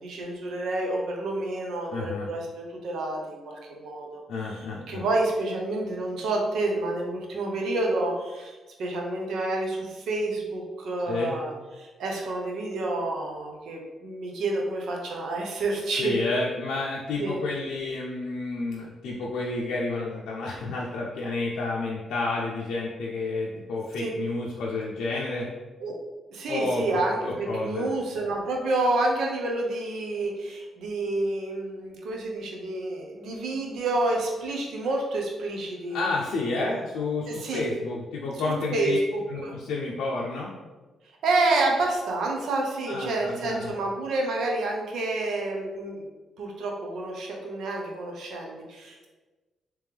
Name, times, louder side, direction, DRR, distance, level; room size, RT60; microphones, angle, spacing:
voice 1, 0.0-4.2 4.5-16.2 17.2-17.4 24.0-24.1 25.8-25.9 26.3-36.0 36.6-36.7 37.3-37.7 38.7-39.5 41.2-46.1 46.4-49.1, right 2 dB, 80° right, 0 dB, 0.7 m, -29 dB
voice 2, 1.9-2.3 4.3-5.0 11.0-11.3 16.0-25.5 26.5-27.9 35.9-39.0 39.3-40.5 42.9-43.7, left 3 dB, 90° left, -4 dB, 0.5 m, -30 dB
3.5 x 3.0 x 3.3 m, 1.2 s
cardioid pair, 100°, 0 cm